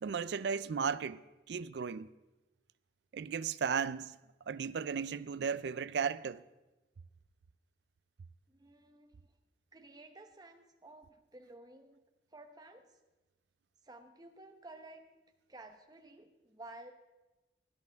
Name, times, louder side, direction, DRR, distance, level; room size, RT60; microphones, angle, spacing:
voice 1, 0.0-1.2 1.5-2.1 3.1-4.2 4.5-6.4, right 6 dB, 60° right, 0.4 m, -35 dB
voice 2, 8.5-9.3 9.7-12.0 12.3-12.9 13.8-15.0 15.5-16.9, right 2 dB, 20° right, 0.9 m, -53 dB
16.0 x 11.0 x 3.5 m
head